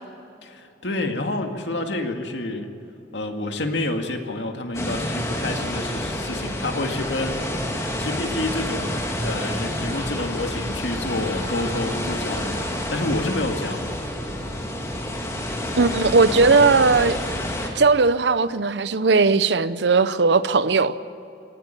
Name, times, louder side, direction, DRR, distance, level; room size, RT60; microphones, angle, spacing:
voice 1, 0.4-2.7 3.1-7.4 7.7-14.0, left 2 dB, 85° left, 2.0 m, -29 dB
sound 1, 4.7-17.7, left 1 dB, 15° left, 2.4 m, -28 dB
voice 2, 15.8-17.2 17.8-21.0, right 4 dB, 80° right, 0.7 m, -18 dB
18.5 x 14.5 x 9.9 m
head